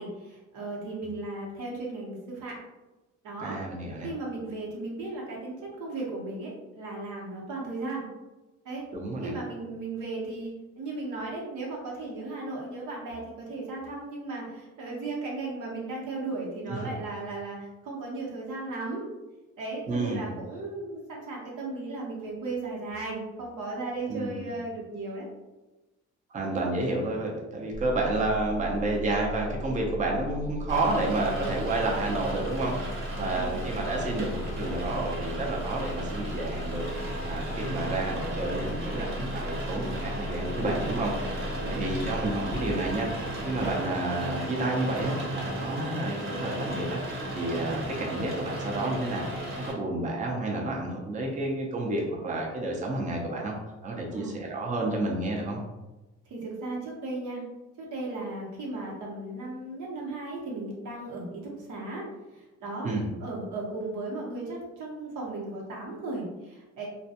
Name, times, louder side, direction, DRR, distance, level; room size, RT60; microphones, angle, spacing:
voice 1, 0.0-2.6 3.2-3.6 4.0-8.0 8.6-8.9 9.2-19.1 19.6-25.3 33.1-33.6 41.6-41.8 54.1-54.5 56.3-57.4 57.8-62.0 62.3-62.9 63.2-66.9, right 2 dB, 80° right, -3 dB, 0.9 m, -36 dB
voice 2, 3.4-4.1 8.9-9.3 16.7-16.9 19.9-20.3 24.1-24.4 26.3-32.7 33.2-36.9 37.2-43.1 43.4-47.0 47.3-49.3 49.6-53.6 53.8-55.6 62.8-63.0, right 2 dB, 25° right, -1 dB, 0.5 m, -30 dB
sound 1, 27.7-43.7, equal, 70° left, 0.5 m, -37 dB
Rain, 30.7-49.7, right 1 dB, 45° right, 0.9 m, -35 dB
2.3 x 2.2 x 2.7 m, 1.1 s
cardioid pair, 90°, 30 cm